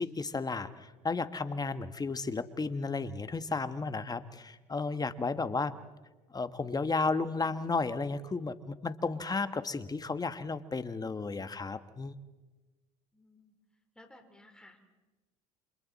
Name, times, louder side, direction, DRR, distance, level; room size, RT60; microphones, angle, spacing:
voice 1, 0.0-5.7 6.3-12.2, left 4 dB, 25° left, 11 dB, 1.4 m, -33 dB
voice 2, 13.1-13.5 13.9-14.8, left 1 dB, 5° left, 4 dB, 3.8 m, -57 dB
30.0 x 27.0 x 4.2 m, 1.2 s
supercardioid pair, 75°, 16 cm